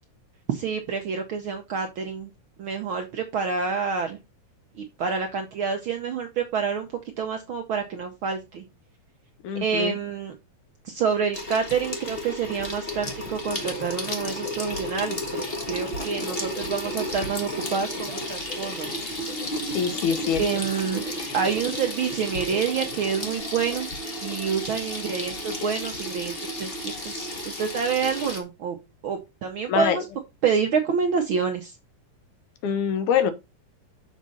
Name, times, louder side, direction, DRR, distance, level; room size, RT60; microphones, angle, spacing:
voice 1, 0.5-2.3 2.6-4.2 4.8-6.9 7.2-8.6 9.6-10.3 10.8-19.0 20.4-21.0 21.3-23.9 24.2-28.8 29.0-30.0 30.4-31.7, right 6 dB, 70° right, 1.2 m, -28 dB
voice 2, 9.4-10.0 19.7-20.5 29.7-30.0 32.6-33.3, left 8 dB, 90° left, 2.4 m, -24 dB
Water tap faucet / Sink (filling or washing), 11.3-28.4, left 1 dB, 30° left, 1.1 m, -33 dB
sound 1, 12.9-23.4, left 3 dB, 45° left, 3.9 m, -45 dB
6.6 x 6.3 x 4.0 m
omnidirectional pair, 3.4 m